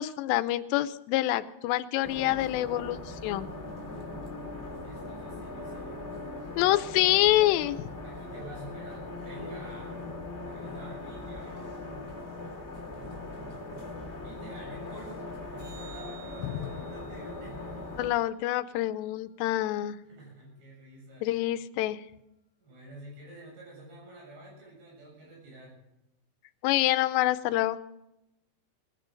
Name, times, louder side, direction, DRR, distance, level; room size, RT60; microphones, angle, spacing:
voice 1, 0.0-3.5 6.6-7.8 18.0-20.0 21.2-22.0 26.6-27.8, left 15 dB, 85° left, 13 dB, 2.9 m, -26 dB
sound 1, 2.0-18.1, left 2 dB, 20° left, 2.1 m, -40 dB
voice 2, 4.8-6.0 8.0-10.1 10.4-11.7 14.2-17.8 20.0-21.4 22.6-25.8, right 1 dB, 85° right, -3 dB, 9.6 m, -48 dB
sound 2, 15.6-20.0 26.6-26.7, right 6 dB, 25° right, 5.2 m, -55 dB
20.5 x 16.0 x 3.9 m, 0.86 s
omnidirectional pair, 4.9 m